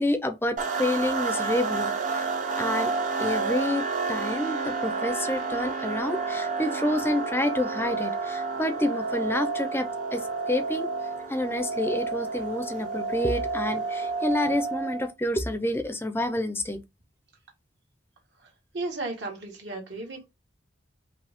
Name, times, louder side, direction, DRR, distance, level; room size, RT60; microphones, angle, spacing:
voice 1, 0.0-2.3 2.6-2.9 3.2-10.9 11.3-16.8, left 1 dB, 10° left, 0.6 m, -28 dB
sound 1, 0.6-15.1, right 4 dB, 40° right, 0.9 m, -30 dB
voice 2, 18.7-20.3, right 2 dB, 65° right, 2.0 m, -34 dB
5.2 x 2.8 x 3.5 m
head